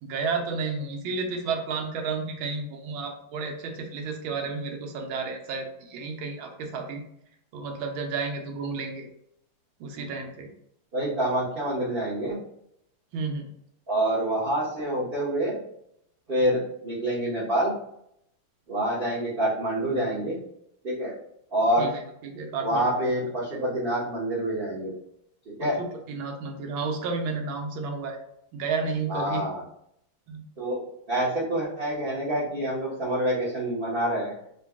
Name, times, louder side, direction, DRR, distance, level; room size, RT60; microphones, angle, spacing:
voice 1, 0.0-7.0 7.5-9.1 9.8-10.5 13.1-13.5 21.8-22.9 23.5-23.6 25.6-28.2 28.5-29.4 30.3-30.4, right 4 dB, 75° right, 3 dB, 1.4 m, -32 dB
voice 2, 10.9-12.4 13.9-15.6 16.3-17.7 18.7-20.4 20.8-21.1 21.5-21.9 22.6-24.9 25.6-25.8 29.1-29.6 30.6-30.8 31.1-34.3, right 1 dB, 55° right, -8 dB, 0.6 m, -27 dB
3.8 x 2.2 x 3.4 m, 0.74 s
omnidirectional pair, 2.4 m